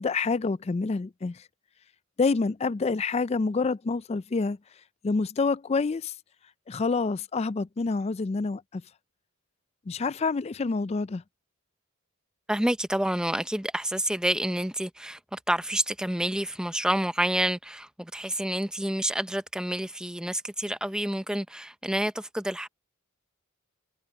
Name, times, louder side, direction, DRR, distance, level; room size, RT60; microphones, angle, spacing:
voice 1, 0.0-1.4 2.2-4.6 5.0-6.1 6.7-8.8 9.9-11.2, left 4 dB, 30° left, 0.3 m, -27 dB
voice 2, 12.5-22.7, right 1 dB, 5° right, 0.6 m, -28 dB
head